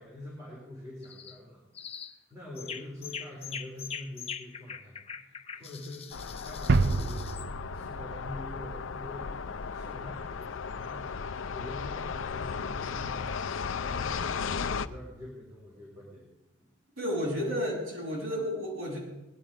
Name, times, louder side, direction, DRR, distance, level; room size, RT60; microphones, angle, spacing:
voice 1, 0.0-7.3 7.7-9.4 9.7-13.4 13.8-16.2 16.6-16.7, left 1 dB, 15° right, -6 dB, 4.1 m, -45 dB
sound 1, 1.0-1.4 1.7-2.2 2.6-7.5, left 7 dB, 30° left, 0.7 m, -42 dB
sound 2, 6.1-14.9, left 5 dB, 70° left, 0.5 m, -35 dB
sound 3, 6.7-9.4, right 3 dB, 50° right, 0.4 m, -29 dB
voice 2, 17.0-19.0, equal, 80° right, -3 dB, 7.8 m, -32 dB
19.0 x 11.5 x 5.2 m, 0.95 s
head